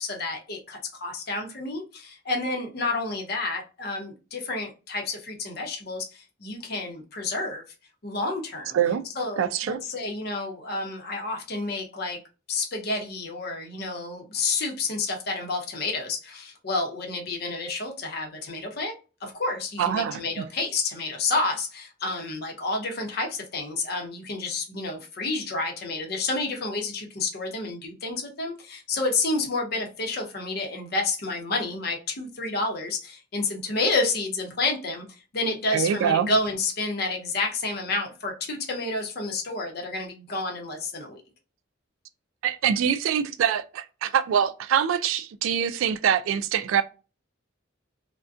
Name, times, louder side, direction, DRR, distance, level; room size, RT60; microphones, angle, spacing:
voice 1, 0.0-7.6 8.0-8.8 9.2-12.2 12.5-18.9 19.2-35.0 35.3-41.2, left 3 dB, 55° left, 0.7 m, -30 dB
voice 2, 9.4-9.8 19.8-20.4 35.7-36.3 42.4-46.8, right 8 dB, 85° right, 0.3 m, -24 dB
2.5 x 2.1 x 2.3 m
head